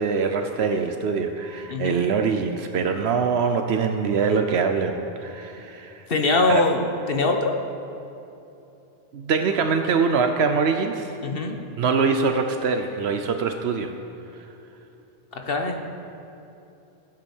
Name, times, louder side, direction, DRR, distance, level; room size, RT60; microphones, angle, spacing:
voice 1, 0.0-6.1 6.5-6.6 9.1-11.1 11.8-13.9, right 5 dB, 85° right, 6 dB, 1.0 m, -23 dB
voice 2, 1.7-2.0 6.1-6.8 7.1-7.6 11.2-11.6 15.3-15.9, left 3 dB, 65° left, 4 dB, 1.5 m, -22 dB
15.0 x 11.0 x 7.2 m, 2.9 s
omnidirectional pair, 1.0 m